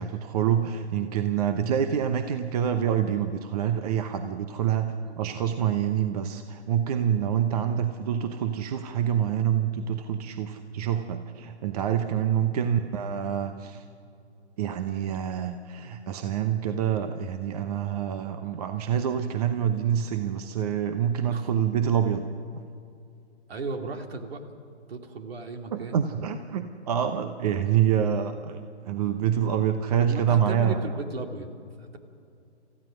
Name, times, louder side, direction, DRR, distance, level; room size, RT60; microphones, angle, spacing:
voice 1, 0.0-13.8 14.6-22.2 22.5-22.6 25.7-30.8, right 9 dB, 35° right, 8 dB, 0.9 m, -26 dB
voice 2, 23.5-24.4 24.9-26.0 30.0-31.5 31.8-32.0, right 3 dB, 60° right, 5 dB, 2.5 m, -36 dB
28.5 x 15.0 x 6.3 m, 2.5 s
hypercardioid pair, 140°, 34 cm